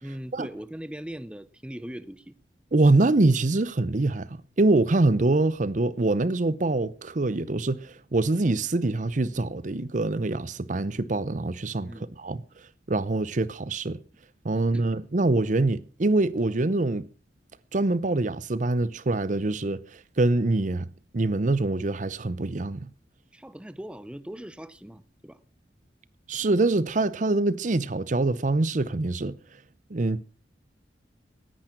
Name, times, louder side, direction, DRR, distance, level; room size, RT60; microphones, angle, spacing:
voice 1, 0.0-2.4 11.8-12.1 14.5-14.9 23.3-25.4, equal, 5° right, 0.6 m, -40 dB
voice 2, 2.7-4.3 4.6-11.9 12.2-12.4 12.9-14.0 14.4-17.0 17.7-19.8 20.2-20.9 21.1-22.9 26.3-29.4 29.9-30.2, right 2 dB, 45° right, 0.7 m, -24 dB
18.0 x 10.5 x 5.9 m
head